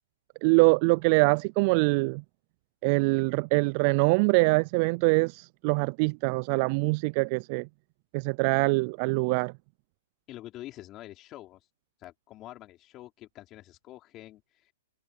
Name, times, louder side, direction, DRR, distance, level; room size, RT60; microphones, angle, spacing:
voice 1, 0.4-2.2 2.8-7.7 8.1-9.5, right 30 dB, 40° right, 0.3 m, -24 dB
voice 2, 10.3-11.7 12.0-14.7, left 15 dB, 30° left, 3.8 m, -46 dB
hypercardioid pair, 135°, 0 cm